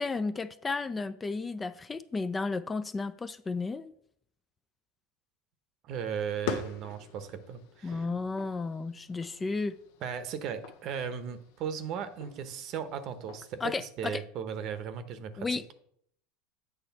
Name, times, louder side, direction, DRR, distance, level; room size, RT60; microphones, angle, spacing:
voice 1, 0.0-3.9 7.8-9.7 13.6-14.2 15.4-15.7, left 3 dB, 20° left, 0.3 m, -33 dB
voice 2, 5.8-8.1 10.0-15.5, right 7 dB, 50° right, 0.8 m, -36 dB
sound 1, 5.9-13.8, left 6 dB, 70° left, 0.7 m, -44 dB
8.1 x 3.3 x 5.7 m
supercardioid pair, 105°, 0 cm